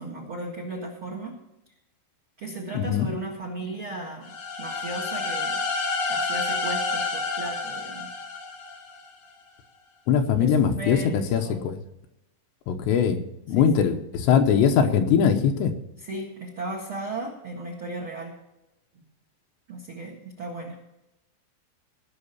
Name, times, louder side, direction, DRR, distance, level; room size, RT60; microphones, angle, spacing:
voice 1, 0.0-1.4 2.4-5.6 6.1-8.1 10.3-11.6 13.5-13.9 16.0-18.4 18.9-19.0 19.7-20.8, right 2 dB, 85° right, 1 dB, 1.1 m, -36 dB
voice 2, 2.7-3.1 10.1-11.8 12.7-13.2 13.5-15.7, left 7 dB, 75° left, 5 dB, 2.9 m, -21 dB
sound 1, 4.2-9.1, left 3 dB, 50° left, 4.4 m, -29 dB
18.0 x 6.2 x 7.0 m, 0.90 s
omnidirectional pair, 5.5 m